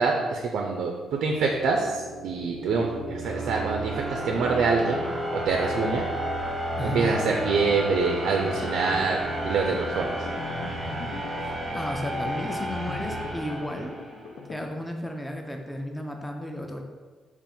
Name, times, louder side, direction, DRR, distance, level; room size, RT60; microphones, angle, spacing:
voice 1, 0.0-5.0 5.3-6.0 6.8-9.2 9.4-10.1, right 4 dB, 75° right, 1 dB, 0.4 m, -25 dB
sound 1, 1.4-14.3, right 1 dB, 20° right, 0.9 m, -32 dB
voice 2, 6.8-7.1 11.4-14.0 14.5-16.8, left 1 dB, 5° left, 3 dB, 0.5 m, -33 dB
sound 2, 8.0-14.7, left 4 dB, 75° left, 0.5 m, -41 dB
3.6 x 2.5 x 4.2 m, 1.4 s
cardioid pair, 90°, 0 cm